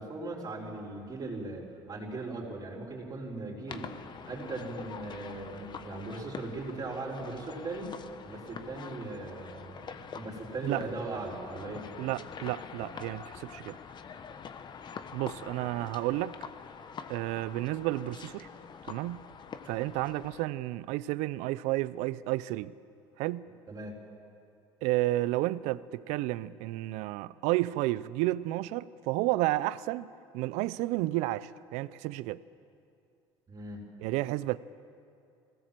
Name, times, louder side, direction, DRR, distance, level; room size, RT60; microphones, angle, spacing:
voice 1, 0.0-3.9 4.2-7.9 8.2-11.9 23.7-24.0 33.5-33.8, right 2 dB, 35° right, 4.6 m, -39 dB
sound 1, 3.7-20.5, left 6 dB, 40° left, 1.2 m, -45 dB
voice 2, 12.0-13.8 15.1-16.4 17.1-18.5 18.8-19.3 19.7-22.7 23.2-23.5 24.8-32.4 34.0-34.6, right 17 dB, 70° right, 0.6 m, -31 dB
20.0 x 17.0 x 7.6 m
supercardioid pair, 80°, 12 cm